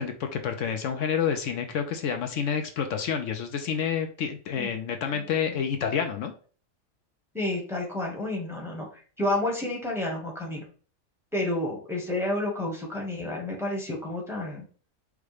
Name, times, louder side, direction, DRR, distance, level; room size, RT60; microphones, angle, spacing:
voice 1, 0.0-6.3, left 7 dB, 75° left, 5 dB, 0.9 m, -29 dB
voice 2, 7.3-8.9 9.2-10.6 11.3-14.6, left 1 dB, ahead, -2 dB, 1.1 m, -30 dB
4.8 x 2.2 x 4.8 m, 0.41 s
omnidirectional pair, 1.4 m